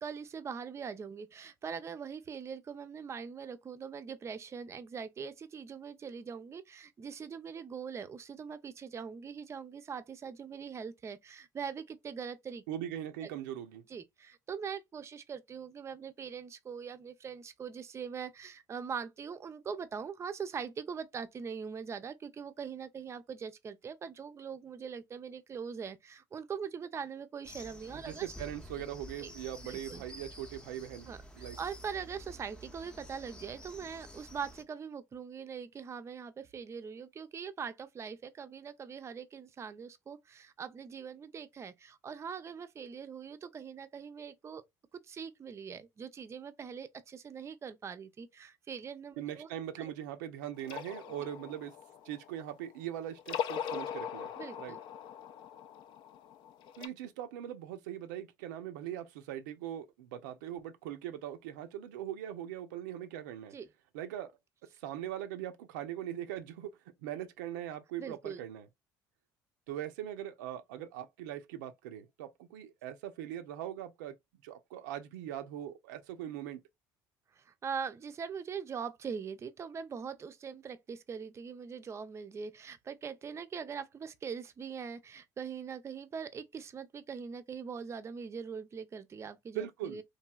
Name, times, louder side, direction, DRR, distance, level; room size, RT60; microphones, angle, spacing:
voice 1, 0.0-12.6 13.2-13.3 13.9-28.3 29.2-29.3 29.7-30.0 31.1-44.6 45.1-49.5 49.8-49.9 51.2-51.3 54.4-54.8 63.5-63.7 68.0-68.4 77.4-90.0, right 6 dB, 30° right, 0.5 m, -42 dB
voice 2, 12.7-13.8 27.9-31.6 49.2-51.7 52.0-54.3 54.6-54.8 56.8-63.6 63.9-64.3 64.8-66.7 67.0-68.7 69.7-74.1 74.4-76.6 89.5-90.0, right 11 dB, 85° right, 0.5 m, -41 dB
sound 1, 27.4-34.6, equal, 10° left, 0.7 m, -50 dB
sound 2, 50.6-52.8 53.2-56.9, left 8 dB, 60° left, 0.4 m, -41 dB
3.0 x 2.6 x 2.3 m
supercardioid pair, 80°, 9 cm